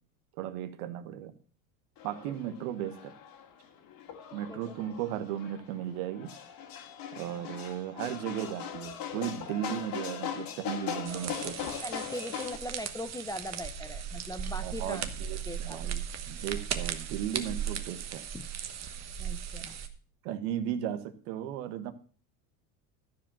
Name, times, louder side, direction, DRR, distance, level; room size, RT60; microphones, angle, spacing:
voice 1, 0.4-1.3 2.0-3.1 4.3-6.3 7.2-11.7 14.6-18.2 19.0-19.1 20.2-21.9, right 10 dB, 70° right, 10 dB, 1.4 m, -36 dB
sound 1, 2.0-12.6, left 8 dB, 45° left, 2.1 m, -40 dB
voice 2, 4.3-4.9 7.3-7.5 11.8-15.1 15.5-15.8 18.3-18.5 19.2-19.8, left 1 dB, 10° left, 10 dB, 0.6 m, -40 dB
sound 2, 11.0-19.9, right 8 dB, 35° right, 1.3 m, -37 dB
13.0 x 4.9 x 7.4 m, 0.41 s
supercardioid pair, 110°, 46 cm